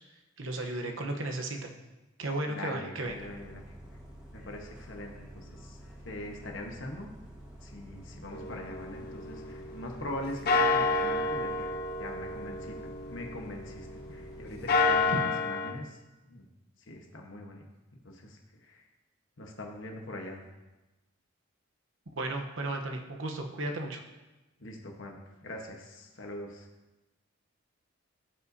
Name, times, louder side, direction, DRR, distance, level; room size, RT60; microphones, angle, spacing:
voice 1, 0.4-1.7 2.2-3.1 15.1-15.2 22.1-24.0, right 2 dB, 70° right, 3 dB, 0.9 m, -34 dB
voice 2, 2.4-3.7 4.3-5.8 6.0-7.1 7.6-11.7 12.0-16.0 16.3-16.4 16.9-17.6 18.0-18.8 19.4-20.4 24.6-26.7, left 1 dB, 65° left, 1 dB, 1.2 m, -42 dB
Bus, 3.0-15.1, equal, 5° right, 1.6 m, -49 dB
sound 1, 8.3-10.1 10.5-14.0 14.5-15.7, left 3 dB, 50° left, 0.7 m, -29 dB
14.5 x 5.4 x 2.7 m, 1.1 s
head